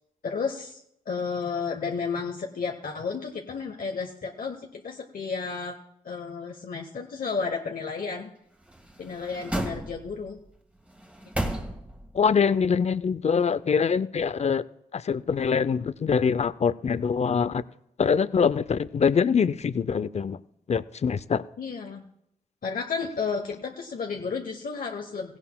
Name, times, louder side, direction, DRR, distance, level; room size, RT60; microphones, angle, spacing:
voice 1, 0.2-5.8 6.0-8.3 9.0-10.4 11.4-11.6 21.6-22.1 22.6-25.4, left 5 dB, 70° left, 1.0 m, -32 dB
sound 1, 8.6-10.3 10.9-12.2 12.5-12.6, right 1 dB, 10° right, 1.6 m, -33 dB
voice 2, 12.1-14.6 14.9-17.6 18.0-20.4 20.7-21.4, left 6 dB, 45° left, 0.5 m, -24 dB
16.5 x 16.0 x 2.2 m
cardioid pair, 65°, 15 cm